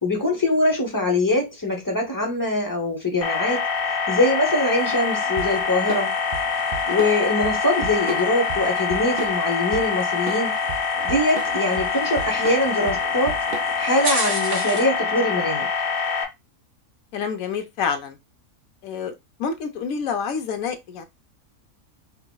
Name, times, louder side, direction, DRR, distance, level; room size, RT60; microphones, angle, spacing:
voice 1, 0.0-3.7 4.1-6.1 6.9-10.5 11.0-13.4 13.8-15.7, left 2 dB, 20° left, 0.6 m, -23 dB
sound 1, 3.2-16.2, left 5 dB, 50° left, 0.8 m, -25 dB
sound 2, 4.3-15.0, right 2 dB, 45° right, 1.4 m, -37 dB
Drum kit / Drum, 5.4-14.0, right 7 dB, 70° right, 0.5 m, -35 dB
voice 2, 17.1-18.2 18.8-19.1 19.4-21.1, left 6 dB, 75° left, 1.1 m, -27 dB
5.6 x 2.0 x 2.2 m
omnidirectional pair, 1.5 m